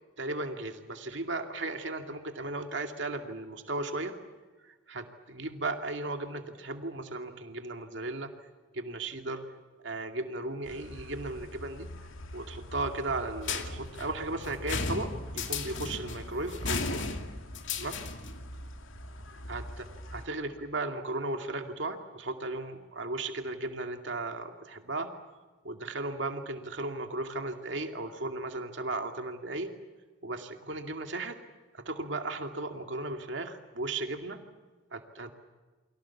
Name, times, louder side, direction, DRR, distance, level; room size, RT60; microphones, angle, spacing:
voice 1, 0.2-4.1 4.6-8.3 8.7-9.4 9.8-11.9 12.3-17.1 17.8-18.0 19.5-19.8 20.1-25.1 25.6-29.7 30.2-31.4 31.7-34.4 34.9-35.3, right 2 dB, 60° right, 5 dB, 2.4 m, -36 dB
sound 1, 10.6-20.3, equal, 85° left, 2.3 m, -44 dB
sound 2, 13.4-18.4, left 4 dB, 65° left, 2.4 m, -35 dB
29.5 x 24.0 x 7.2 m, 1.3 s
head